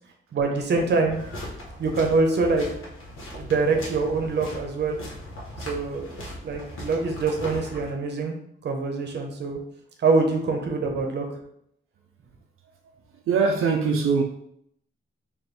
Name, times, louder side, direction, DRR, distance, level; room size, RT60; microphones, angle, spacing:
voice 1, 0.3-1.2 1.8-2.7 3.3-5.0 5.7-8.4 8.6-9.6 10.0-11.3, right 3 dB, 55° right, 3 dB, 0.8 m, -24 dB
sound 1, 1.1-7.9, left 1 dB, 75° left, 1.2 m, -39 dB
voice 2, 13.3-14.2, right 5 dB, 80° right, 1 dB, 0.5 m, -22 dB
4.1 x 2.5 x 3.3 m, 0.71 s
wide cardioid pair, 155°, 21 cm